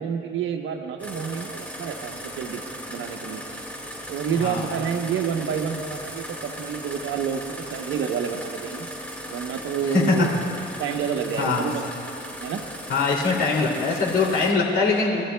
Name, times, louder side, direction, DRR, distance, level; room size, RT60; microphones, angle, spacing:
voice 1, 0.0-2.6 2.9-3.4 4.1-8.9 9.3-10.3 10.8-11.8 12.4-12.7, right 7 dB, 80° right, 4 dB, 1.0 m, -29 dB
sound 1, 1.0-14.5, equal, 5° left, 2.1 m, -37 dB
voice 2, 9.9-10.3 11.4-11.7 12.9-15.2, left 4 dB, 80° left, -2 dB, 2.7 m, -22 dB
25.5 x 13.5 x 2.3 m, 2.4 s
cardioid pair, 90°, 20 cm